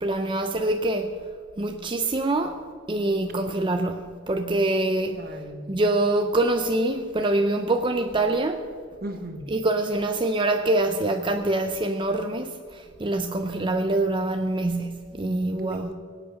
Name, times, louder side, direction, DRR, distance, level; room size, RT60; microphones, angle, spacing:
voice 1, 0.0-1.2 1.6-5.2 5.7-8.7 9.5-15.9, right 2 dB, 25° right, 0.6 m, -25 dB
voice 2, 5.2-5.7 9.0-9.5 15.5-15.9, right 1 dB, 50° right, 1.3 m, -36 dB
23.5 x 8.2 x 5.7 m
head